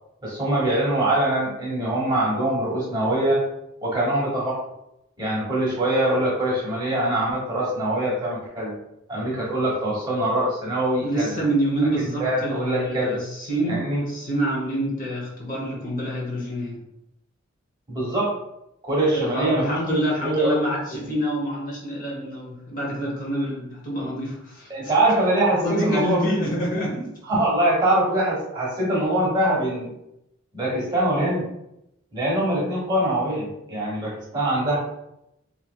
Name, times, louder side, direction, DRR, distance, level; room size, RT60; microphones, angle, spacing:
voice 1, 0.2-3.4 3.8-4.6 5.2-8.7 9.1-11.4 12.2-13.2 13.7-14.0 17.9-18.3 18.8-20.5 21.0-21.1 24.7-26.5 27.3-29.9 30.5-31.5 32.1-34.8, right 1 dB, 20° right, -5 dB, 1.0 m, -23 dB
voice 2, 11.0-16.8 19.1-24.9 25.6-27.1, right 1 dB, 40° left, -4 dB, 0.8 m, -27 dB
2.9 x 2.8 x 2.2 m, 0.83 s
head